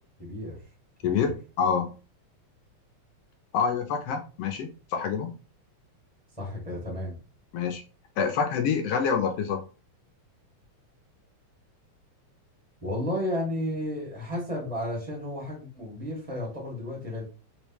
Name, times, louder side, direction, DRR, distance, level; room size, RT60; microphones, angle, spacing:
voice 1, 0.2-0.6 1.0-1.3 6.4-7.2 12.8-17.2, left 1 dB, 5° left, -2 dB, 1.1 m, -32 dB
voice 2, 1.0-1.9 3.5-5.3 7.5-7.8 8.2-9.6, left 6 dB, 75° left, 6 dB, 1.4 m, -27 dB
4.7 x 3.4 x 3.0 m, 0.34 s
omnidirectional pair, 3.3 m